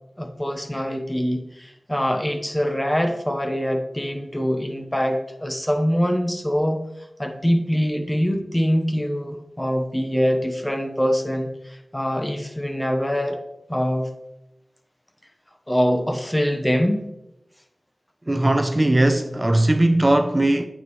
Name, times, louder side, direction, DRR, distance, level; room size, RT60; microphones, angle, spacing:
voice 1, 0.2-6.8 7.2-13.4 13.7-14.1 15.7-17.1, equal, 15° left, 1.1 m, -24 dB
voice 2, 18.3-20.7, right 1 dB, 25° right, 0.6 m, -19 dB
9.1 x 7.6 x 3.2 m
cardioid pair, 45°, 0 cm